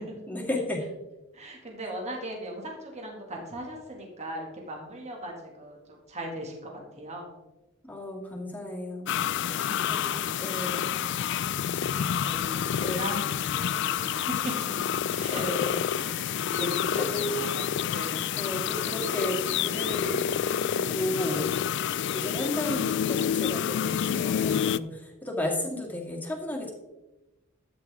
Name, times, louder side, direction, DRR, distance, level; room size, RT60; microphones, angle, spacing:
voice 1, 0.3-0.8 7.8-9.1 9.9-10.1 10.4-10.9 12.8-13.1 15.3-15.9 16.9-17.3 18.4-20.2 20.7-21.5 22.1-26.7, left 1 dB, 10° left, 0 dB, 2.0 m, -33 dB
voice 2, 1.3-5.8 6.1-6.7 7.0-7.3 9.4-10.6 11.8-12.0 12.3-13.2 13.6-14.7 15.1-15.5 15.9-18.3, right 1 dB, 30° right, 0 dB, 2.2 m, -39 dB
sound 1, 9.1-24.8, left 9 dB, 55° left, 0.3 m, -28 dB
12.5 x 8.9 x 3.6 m, 1.0 s
head